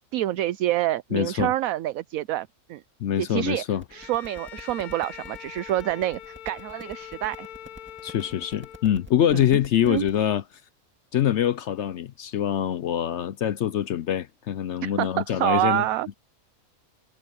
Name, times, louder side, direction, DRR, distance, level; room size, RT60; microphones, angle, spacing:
voice 1, 0.1-2.8 3.2-3.6 3.9-7.5 9.3-9.4 9.8-10.1 14.8-16.2, right 14 dB, 75° right, 1.0 m, -27 dB
voice 2, 1.1-1.5 3.0-3.8 8.0-10.4 11.1-15.8, left 10 dB, 65° left, 0.8 m, -24 dB
sound 1, 3.7-10.2, right 1 dB, 10° right, 1.8 m, -48 dB
Bowed string instrument, 3.9-9.2, left 11 dB, 80° left, 1.2 m, -43 dB
omnidirectional pair, 1.5 m